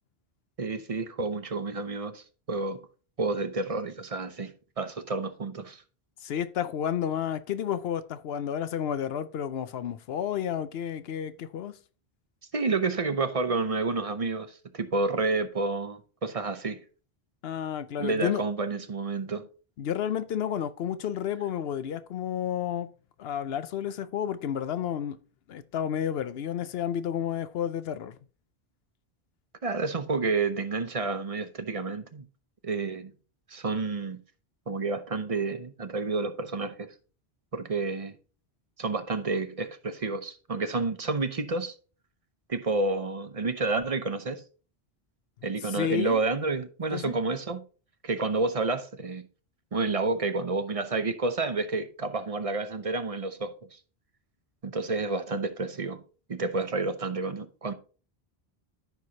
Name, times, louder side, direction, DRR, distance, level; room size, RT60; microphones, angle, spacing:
voice 1, 0.6-2.8 3.2-4.5 4.8-5.8 12.5-16.8 18.0-19.5 29.6-32.2 32.6-33.1 33.5-34.2 34.7-36.9 37.5-38.2 38.8-41.7 42.5-44.4 45.4-47.6 48.0-49.2 49.7-53.5 54.6-56.0 56.3-57.7, right 3 dB, 40° right, 0.7 m, -30 dB
voice 2, 6.2-11.8 17.4-18.4 19.8-22.9 23.2-25.2 25.5-28.2 45.6-46.2 46.9-47.2, left 9 dB, 75° left, 0.8 m, -31 dB
14.0 x 4.8 x 2.7 m
omnidirectional pair, 1.1 m